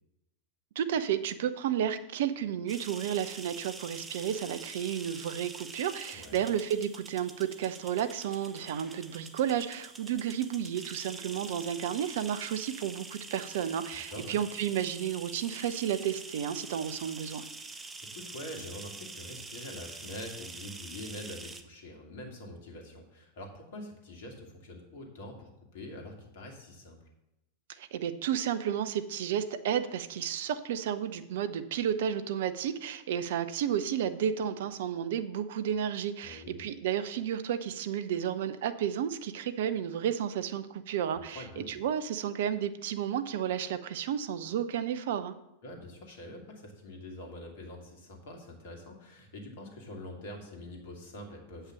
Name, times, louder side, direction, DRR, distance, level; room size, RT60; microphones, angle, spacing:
voice 1, 0.8-17.5 27.8-45.3, right 9 dB, 55° right, 11 dB, 0.7 m, -32 dB
sound 1, 2.7-21.6, right 3 dB, 15° right, 0.8 m, -46 dB
voice 2, 6.1-6.4 14.1-14.4 17.6-17.9 18.1-27.1 36.2-36.6 41.1-41.7 45.6-51.7, left 1 dB, 55° left, 1 dB, 2.4 m, -45 dB
8.3 x 5.7 x 7.3 m, 0.88 s
figure-of-eight pair, 90°, 0 cm